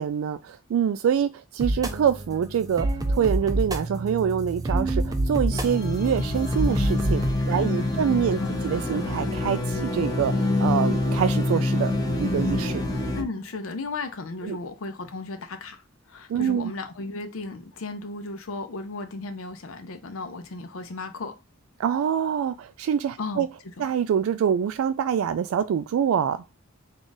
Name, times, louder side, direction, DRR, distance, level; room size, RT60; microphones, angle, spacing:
voice 1, 0.0-11.9 12.2-12.8 14.4-14.6 16.3-16.7 21.8-23.5 23.8-26.4, right 8 dB, 90° right, 0.3 m, -25 dB
sound 1, 1.6-7.3, right 1 dB, 20° right, 0.4 m, -28 dB
sound 2, 5.5-13.2, left 2 dB, 20° left, 0.7 m, -26 dB
voice 2, 7.4-8.6 8.9-9.0 13.1-21.4 23.2-23.5 23.8-23.9, left 3 dB, 80° left, 0.6 m, -35 dB
3.7 x 2.4 x 3.9 m
head